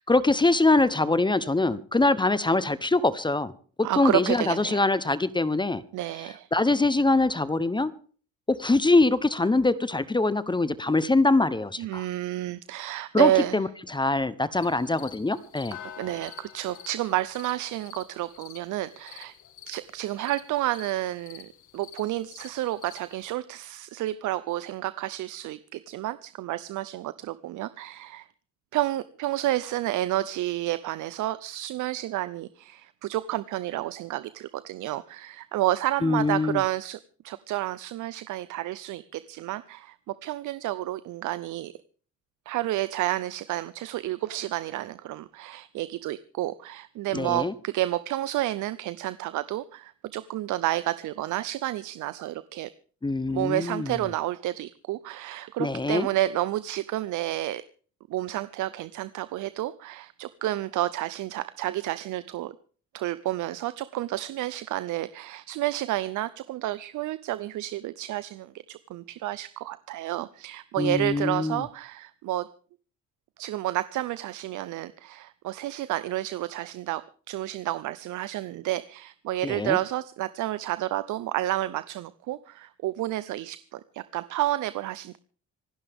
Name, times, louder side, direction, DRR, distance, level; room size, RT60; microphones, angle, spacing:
voice 1, 0.0-3.5 3.8-5.8 6.5-7.9 8.5-12.1 13.1-15.8 36.0-36.6 47.1-47.5 53.0-54.0 55.6-56.1 70.8-71.6 79.4-79.8, left 2 dB, 15° left, 0.8 m, -23 dB
voice 2, 3.8-4.9 5.9-6.5 11.8-13.6 16.0-19.3 19.7-21.5 21.7-28.3 28.7-37.0 37.2-41.7 42.5-52.7 53.3-57.6 58.1-62.5 62.9-72.5 73.4-85.2, right 15 dB, 80° right, 0.6 m, -30 dB
sound 1, 14.6-23.3, left 10 dB, 80° left, 1.8 m, -48 dB
26.0 x 11.0 x 3.6 m
cardioid pair, 90°, 30 cm